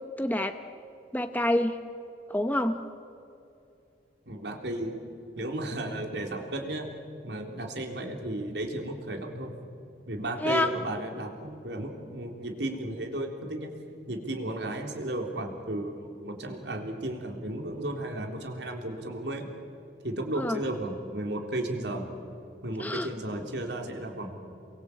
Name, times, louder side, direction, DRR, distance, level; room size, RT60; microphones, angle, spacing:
voice 1, 0.2-0.6 1.1-1.8 2.3-2.8 10.4-10.7 20.4-20.6 22.8-23.1, left 1 dB, 10° left, 7 dB, 0.8 m, -27 dB
voice 2, 4.3-5.0 5.4-6.9 7.2-9.5 10.1-13.7 14.1-19.5 20.0-22.1 22.6-24.4, right 1 dB, 80° right, 3 dB, 3.8 m, -34 dB
28.5 x 23.5 x 8.6 m, 2.7 s
head